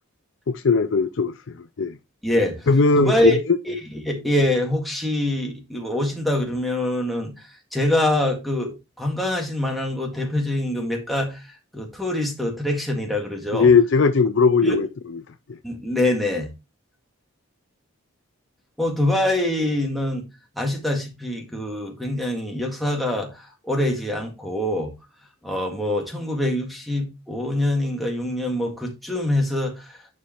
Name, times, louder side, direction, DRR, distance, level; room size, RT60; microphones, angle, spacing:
voice 1, 0.5-2.0 2.7-3.3 13.5-14.9, left 4 dB, 60° left, 0.5 m, -18 dB
voice 2, 2.2-2.7 3.0-3.4 3.7-3.8 4.0-13.7 14.6-14.8 15.6-16.5 18.8-20.3 20.6-24.9 25.4-30.1, left 1 dB, ahead, 1.8 m, -24 dB
11.0 x 4.7 x 3.0 m
head